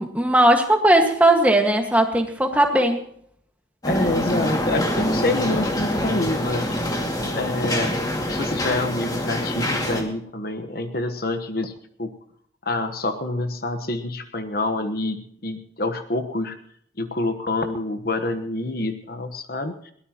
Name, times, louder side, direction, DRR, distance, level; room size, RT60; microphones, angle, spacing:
voice 1, 0.0-3.0, right 1 dB, 10° right, 3 dB, 1.7 m, -18 dB
voice 2, 3.8-6.8 7.3-7.9 8.3-11.7 12.0-12.1 12.6-16.5 17.0-19.9, left 2 dB, 50° left, 9 dB, 1.2 m, -27 dB
sound 1, 3.8-10.0, left 1 dB, 20° left, 2.2 m, -25 dB
22.0 x 18.0 x 3.0 m, 0.66 s
head